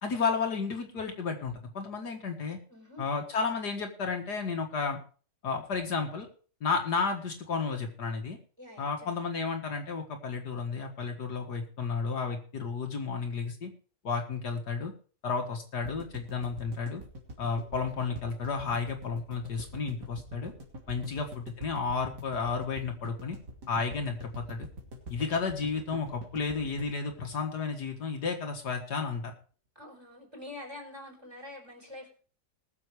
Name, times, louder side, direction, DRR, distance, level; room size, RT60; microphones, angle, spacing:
voice 1, 0.0-2.6 3.0-5.0 5.4-6.3 6.6-8.4 8.8-13.7 14.0-14.9 15.2-17.0 17.4-20.5 20.9-23.4 23.7-24.7 25.1-29.3, left 5 dB, 65° left, 3 dB, 2.2 m, -32 dB
voice 2, 2.7-3.0 8.6-9.1 20.9-21.2 29.7-32.1, left 1 dB, 15° right, 0 dB, 4.5 m, -46 dB
sound 1, 15.8-28.0 28.3-28.4 28.6-28.7, equal, 70° right, 3.3 m, -44 dB
20.5 x 7.0 x 4.8 m, 0.40 s
omnidirectional pair, 1.9 m